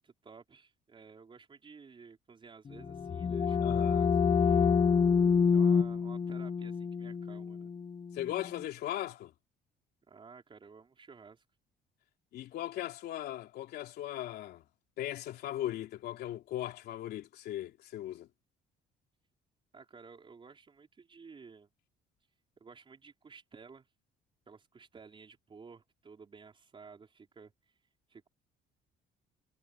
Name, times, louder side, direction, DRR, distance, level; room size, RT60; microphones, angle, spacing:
voice 1, 0.0-4.1 4.4-4.8 5.5-7.7 10.1-11.4 19.7-21.7 22.6-23.9 24.5-27.8 28.1-28.3, right 5 dB, 30° right, 4.7 m, -54 dB
sound 1, 2.7-8.3, left 6 dB, 30° left, 0.7 m, -27 dB
voice 2, 3.6-4.0 8.1-9.3 12.3-14.6 15.0-18.3, left 13 dB, 75° left, 3.0 m, -38 dB
cardioid pair, 110°, 17 cm